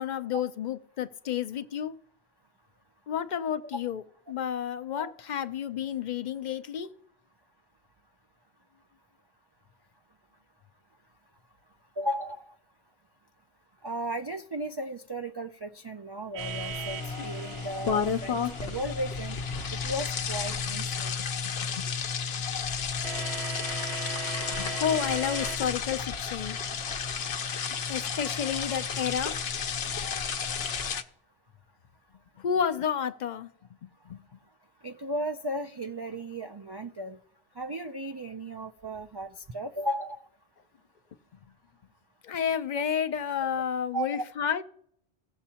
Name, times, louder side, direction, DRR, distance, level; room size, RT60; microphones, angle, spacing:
voice 1, 0.0-1.9 3.1-6.9 20.7-20.8 21.2-21.9 22.3-22.4 24.6-26.6 27.9-29.4 32.4-33.5 33.8-34.2 42.2-44.6, left 8 dB, 55° left, 0.6 m, -31 dB
voice 2, 12.0-12.5 13.8-19.4 19.7-21.1 34.8-37.2 37.6-40.2 43.9-44.2, right 1 dB, 45° right, 0.3 m, -35 dB
sound 1, 16.3-20.0 23.0-25.6, right 6 dB, 90° right, 0.9 m, -39 dB
Small Waterfall, 16.4-31.0, left 6 dB, 75° left, 1.0 m, -32 dB
17.0 x 7.0 x 2.8 m
omnidirectional pair, 1.0 m